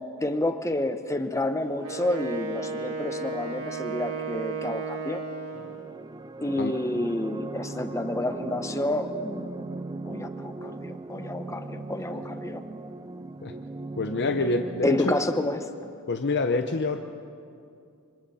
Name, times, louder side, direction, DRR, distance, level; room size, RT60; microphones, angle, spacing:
voice 1, 0.2-5.2 6.4-9.7 10.1-12.6 14.8-15.7, left 1 dB, 15° left, 8 dB, 0.9 m, -29 dB
Wind instrument woodwind instrument, 1.8-5.8, right 4 dB, 70° right, 2.9 m, -34 dB
sound 1, 5.5-15.1, right 2 dB, 20° right, 0.4 m, -38 dB
voice 2, 14.0-15.2 16.1-17.0, left 3 dB, 50° left, 6 dB, 0.7 m, -26 dB
26.5 x 25.0 x 4.2 m, 2.5 s
head